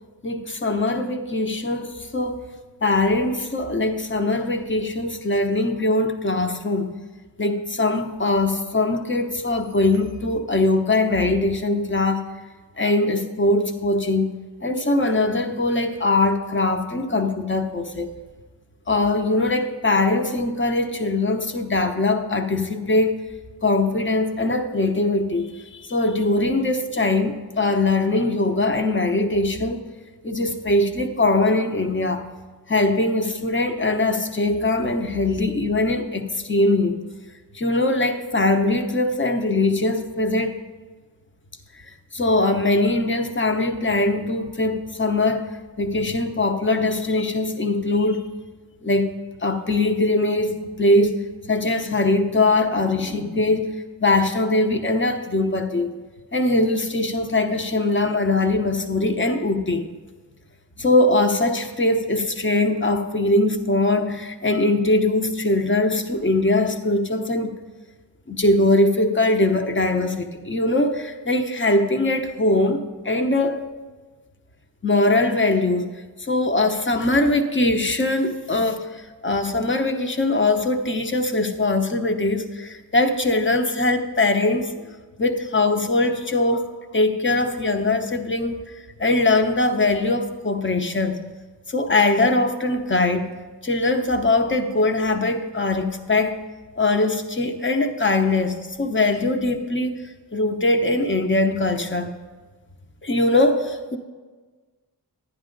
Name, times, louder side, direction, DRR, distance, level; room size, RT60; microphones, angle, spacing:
voice 1, 0.2-2.4 2.8-6.9 7.4-12.3 12.8-14.3 14.6-18.1 18.9-23.2 23.6-29.8 30.2-32.2 32.7-37.0 37.5-40.6 42.1-45.5 45.8-48.2 48.8-51.2 51.5-53.7 54.0-56.0 56.3-59.9 60.8-67.5 68.3-73.7 74.8-75.9 76.2-84.7 85.2-88.6 89.0-91.2 91.7-93.3 93.6-96.4 96.8-100.0 100.3-102.1 103.0-104.0, left 2 dB, 30° left, 6 dB, 0.9 m, -21 dB
11.0 x 10.0 x 3.9 m, 1.4 s
wide cardioid pair, 85°, 39 cm